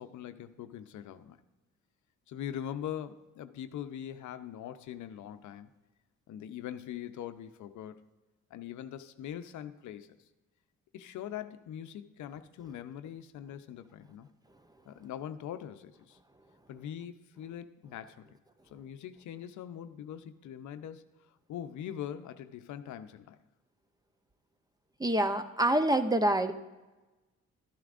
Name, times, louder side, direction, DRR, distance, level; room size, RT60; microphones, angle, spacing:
voice 1, 0.0-1.4 2.3-5.7 6.3-8.0 8.5-10.1 10.9-14.3 14.9-16.2 16.7-18.4 18.7-21.0 21.5-23.4, left 10 dB, 75° left, 10 dB, 0.7 m, -42 dB
voice 2, 25.0-26.5, right 1 dB, 15° right, 9 dB, 0.7 m, -26 dB
12.5 x 11.0 x 2.5 m, 1.1 s
cardioid pair, 90°, 30 cm